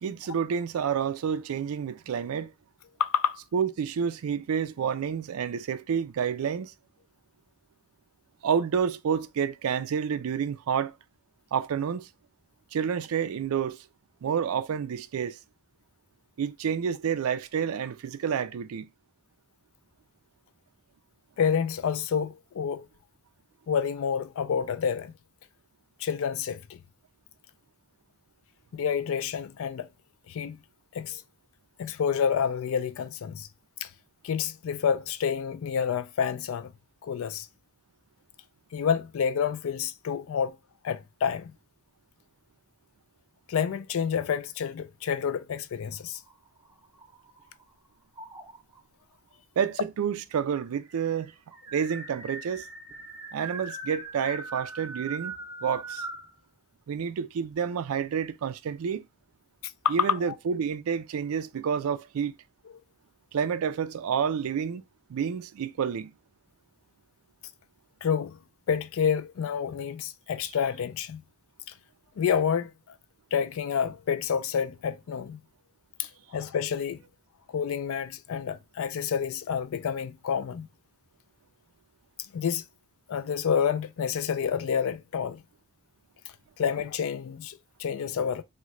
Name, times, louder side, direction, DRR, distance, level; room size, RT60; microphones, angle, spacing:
voice 1, 0.0-2.5 3.5-6.7 8.4-10.9 11.5-12.1 12.7-13.9 14.2-15.4 16.4-18.9 49.6-51.3 51.7-52.7 53.3-55.3 55.6-56.1 56.9-59.1 59.9-62.3 63.3-64.8 65.1-66.1, right 7 dB, 70° right, 0.4 m, -29 dB
voice 2, 3.0-3.4 21.4-22.9 23.7-25.1 26.0-26.8 28.7-29.9 30.3-30.6 30.9-31.2 31.8-33.5 33.8-33.9 34.2-36.7 37.0-37.5 38.7-40.6 40.8-41.5 43.5-46.2 59.8-60.3 68.0-68.4 68.7-71.2 72.2-72.7 73.3-75.4 76.0-77.0 77.5-80.7 82.3-82.6 83.1-85.4 86.6-88.4, left 7 dB, 65° left, 0.3 m, -28 dB
sound 1, 46.2-47.6 48.2-48.8 49.8-49.9 50.1-50.2 50.6-56.3, right 2 dB, 15° right, 0.5 m, -40 dB
3.6 x 2.2 x 3.1 m
head